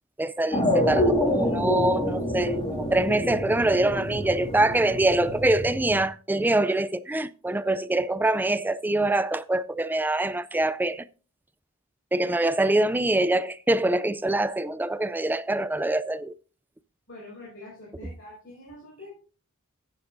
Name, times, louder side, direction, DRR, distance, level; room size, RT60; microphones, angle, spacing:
voice 1, 0.2-11.0 12.1-16.3, right 2 dB, 10° right, 0.4 m, -24 dB
sound 1, 0.5-6.0, left 1 dB, 25° left, 2.0 m, -27 dB
voice 2, 17.1-19.1, left 2 dB, 55° left, 5.3 m, -45 dB
14.0 x 9.6 x 2.6 m
head